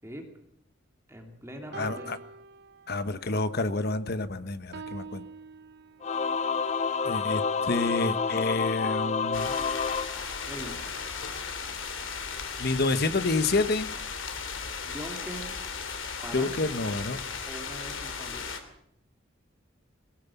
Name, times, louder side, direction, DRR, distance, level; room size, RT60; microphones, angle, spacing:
voice 1, 1.1-2.1 10.5-11.0 14.8-15.5 16.2-16.6 17.5-18.5, right 1 dB, 15° right, 3 dB, 2.9 m, -42 dB
sound 1, 1.7-3.3 3.7-4.0 4.7-6.4 7.7-10.1, right 4 dB, 60° right, 1.0 m, -46 dB
voice 2, 1.8-2.2 2.9-5.2 7.0-9.5 12.6-13.9 16.3-17.2, left 2 dB, 55° left, 11 dB, 1.2 m, -28 dB
Singing / Musical instrument, 6.0-10.9, left 5 dB, 35° left, 0.8 m, -29 dB
sound 2, 9.3-18.6, left 5 dB, 75° left, 2.9 m, -36 dB
21.0 x 17.5 x 7.2 m, 0.72 s
head